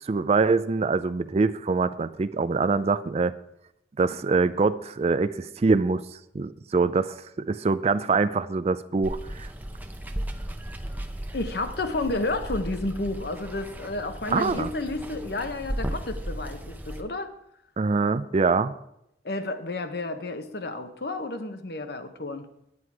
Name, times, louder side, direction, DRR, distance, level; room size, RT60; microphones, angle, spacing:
voice 1, 0.0-3.3 4.0-6.0 6.3-7.2 7.5-9.5 14.3-14.7 17.8-18.7, right 4 dB, 35° right, 13 dB, 0.4 m, -24 dB
Water, 9.0-17.0, right 1 dB, 10° right, 0.7 m, -35 dB
voice 2, 11.3-17.3 19.2-22.5, left 2 dB, 60° left, 8 dB, 0.9 m, -31 dB
10.0 x 9.6 x 4.7 m, 0.80 s
head